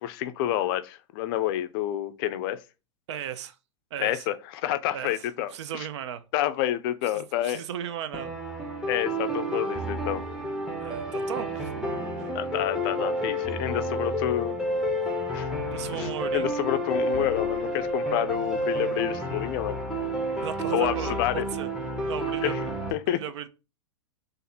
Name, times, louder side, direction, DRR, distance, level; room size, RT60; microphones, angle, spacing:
voice 1, 0.0-2.6 4.0-5.9 6.3-7.6 8.9-10.2 12.3-14.5 15.3-15.5 15.9-19.8 20.7-21.4 22.4-22.6 22.9-23.2, left 12 dB, 45° left, 0.4 m, -29 dB
voice 2, 3.1-3.6 3.9-4.3 4.9-6.2 7.1-8.3 10.8-11.9 15.7-16.6 20.4-21.7 22.0-22.7 23.0-23.5, right 9 dB, 65° right, 0.5 m, -36 dB
sound 1, 8.1-22.9, equal, 5° right, 0.7 m, -30 dB
2.6 x 2.5 x 4.1 m
hypercardioid pair, 110°, 16 cm